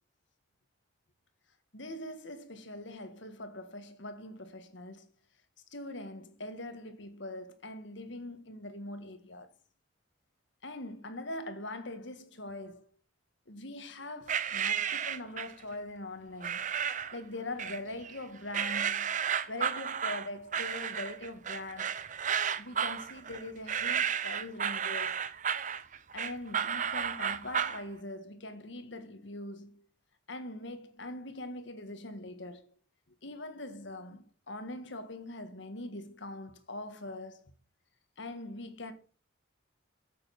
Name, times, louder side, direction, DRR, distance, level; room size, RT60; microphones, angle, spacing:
voice 1, 1.7-5.1 5.7-9.5 10.6-12.9 13.5-19.2 19.5-22.0 22.6-25.2 26.1-29.9 30.3-32.7 33.2-37.4 38.2-38.9, left 1 dB, 65° left, 1.7 m, -42 dB
sound 1, 14.3-15.6 16.4-17.2 17.6-18.2 18.5-27.8, right 8 dB, 40° right, 0.7 m, -32 dB
9.0 x 7.9 x 5.9 m
head